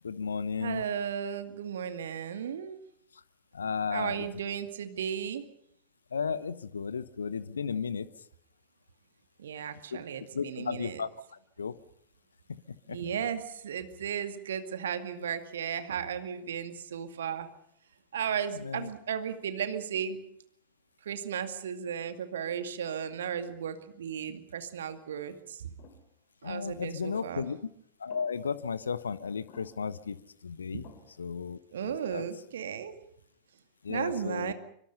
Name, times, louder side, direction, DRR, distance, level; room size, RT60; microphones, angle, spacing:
voice 1, 0.0-0.8 3.5-4.3 6.1-8.1 9.9-10.0 10.3-11.8 12.5-12.6 12.9-13.0 18.5-18.9 24.2-24.3 26.4-27.6 28.0-30.9 31.2-32.2 33.8-34.5, left 6 dB, 70° left, 17 dB, 0.9 m, -34 dB
voice 2, 0.6-2.8 3.9-5.4 9.4-11.0 12.9-17.5 18.1-20.2 21.1-25.7 26.4-27.5 30.7-30.8 31.7-32.9 33.9-34.5, right 8 dB, 65° right, 9 dB, 2.2 m, -35 dB
sound 1, 25.8-26.1 27.1-27.5 28.1-28.6 29.5-30.0 30.8-31.4, left 6 dB, 40° left, 3.4 m, -55 dB
25.5 x 24.5 x 5.6 m, 0.69 s
figure-of-eight pair, 90°, 0 cm